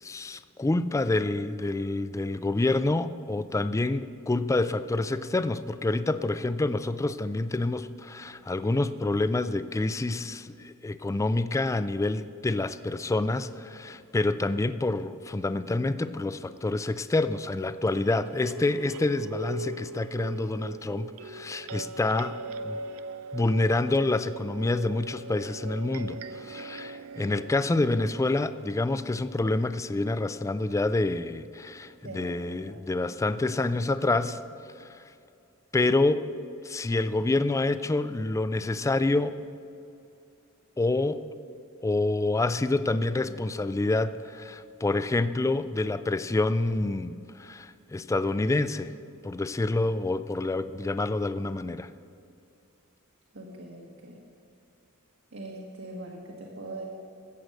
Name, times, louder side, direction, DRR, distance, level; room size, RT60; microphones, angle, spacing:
voice 1, 0.0-22.4 22.6-22.8 23.3-34.4 34.8-34.9 35.7-36.3 36.6-39.4 40.8-41.4 41.8-48.9 49.2-51.9, left 2 dB, 15° left, 13 dB, 0.3 m, -27 dB
sound 1, 17.9-28.2, right 3 dB, 80° right, 0.5 m, -40 dB
voice 2, 32.0-32.8 53.3-54.2 55.3-56.8, right 2 dB, 65° right, -2 dB, 1.4 m, -42 dB
14.0 x 8.0 x 6.4 m, 2.6 s
head